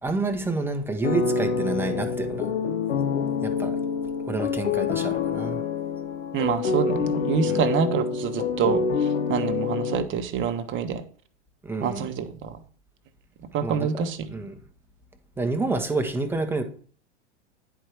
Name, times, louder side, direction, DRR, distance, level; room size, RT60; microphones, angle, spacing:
voice 1, 0.0-2.5 3.4-3.8 4.3-5.6 7.5-7.7 11.6-12.1 13.6-14.6 15.4-16.6, right 3 dB, 5° right, 5 dB, 1.2 m, -29 dB
sound 1, 1.0-10.1, left 5 dB, 75° left, 1.0 m, -26 dB
voice 2, 6.3-11.0 11.8-12.6 13.4-14.3, right 7 dB, 35° right, 7 dB, 1.2 m, -27 dB
10.0 x 4.7 x 4.9 m, 0.44 s
hypercardioid pair, 95°, 36 cm